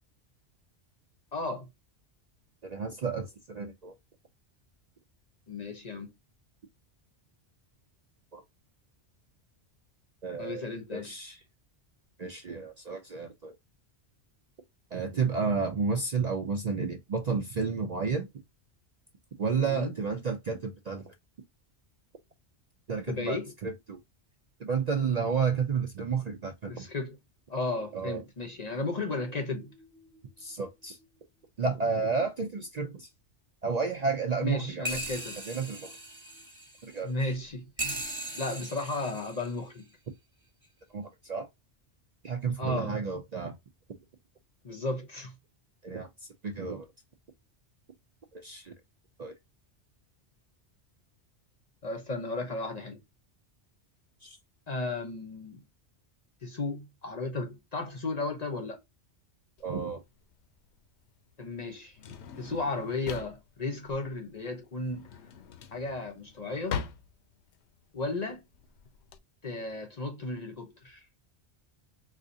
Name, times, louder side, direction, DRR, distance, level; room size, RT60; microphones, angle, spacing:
voice 1, 1.3-1.7 5.5-6.1 10.4-11.1 19.5-19.9 23.1-23.5 26.7-27.2 27.5-29.7 34.4-35.4 37.0-38.0 38.3-39.8 42.6-43.0 44.6-45.3 51.8-53.0 54.7-55.6 56.4-58.8 61.4-65.1 65.7-66.8 67.9-68.4 69.4-71.0, left 2 dB, 40° left, 0.7 m, -34 dB
voice 2, 2.6-3.9 8.3-8.4 10.2-10.6 10.9-11.4 12.2-13.6 14.9-18.3 19.4-21.1 22.9-24.0 24.6-26.9 27.9-28.2 30.4-31.0 31.6-33.1 33.6-34.9 35.5-35.9 36.8-37.3 40.9-41.5 42.2-43.5 45.8-46.1 46.4-46.9 48.3-48.7 49.2-49.3 54.2-54.4 59.6-60.0, right 5 dB, 50° right, 0.5 m, -31 dB
sound 1, 29.2-30.2 30.6-30.7 31.0-31.1 34.8-37.3 37.8-39.8 40.6-40.7, right 1 dB, 25° right, 1.0 m, -39 dB
Drawer open or close, 59.6-69.2, left 6 dB, 75° left, 0.9 m, -42 dB
4.1 x 2.5 x 2.5 m
omnidirectional pair, 1.2 m